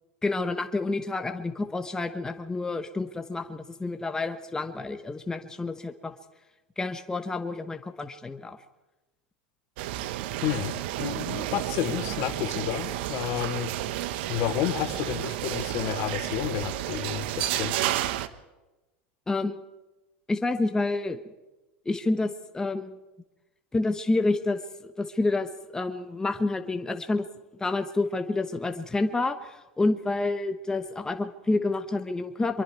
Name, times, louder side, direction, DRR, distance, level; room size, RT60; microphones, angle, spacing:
voice 1, 0.2-6.1 6.8-8.6 19.3-19.6 20.3-21.2 21.8-23.0 23.7-27.3 27.6-32.6, left 2 dB, 10° left, 7 dB, 1.1 m, -29 dB
sound 1, 9.8-18.3, right 14 dB, 65° right, 1.2 m, -31 dB
voice 2, 10.4-13.7 14.3-17.8, left 12 dB, 50° left, 9 dB, 1.8 m, -31 dB
24.5 x 23.0 x 4.7 m, 1.1 s
supercardioid pair, 120°, 6 cm